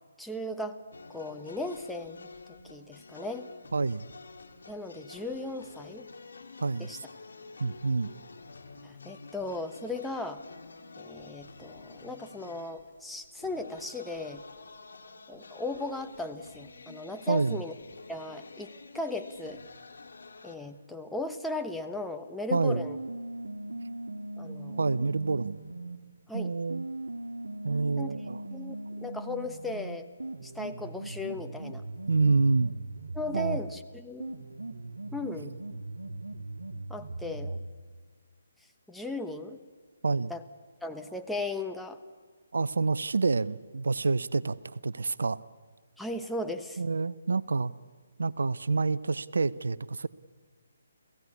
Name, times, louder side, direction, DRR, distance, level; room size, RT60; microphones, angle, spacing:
voice 1, 0.2-0.8 1.1-2.3 2.6-3.5 4.7-6.1 6.8-7.0 8.8-10.4 11.0-14.4 15.3-17.7 18.1-19.6 20.4-23.0 24.4-24.8 26.3-26.5 28.0-28.1 28.5-30.1 30.4-31.8 33.1-34.4 35.1-35.5 36.9-37.6 38.9-39.6 40.3-40.4 40.8-42.0 46.0-46.8, left 2 dB, ahead, 5 dB, 1.1 m, -37 dB
sound 1, 0.9-20.6, left 4 dB, 70° left, 2.4 m, -49 dB
voice 2, 3.7-4.1 6.6-7.0 7.6-8.1 17.3-17.6 22.5-22.9 24.8-25.6 26.3-26.9 27.6-28.4 32.1-32.7 33.3-33.6 40.0-40.3 42.5-45.4 46.8-47.7 48.2-50.1, right 4 dB, 75° right, 18 dB, 0.6 m, -27 dB
sound 2, 22.7-26.0 26.7-33.7 34.2-37.7, right 2 dB, 90° right, 1.6 m, -39 dB
29.5 x 16.5 x 8.5 m, 1.6 s
figure-of-eight pair, 145°, 0 cm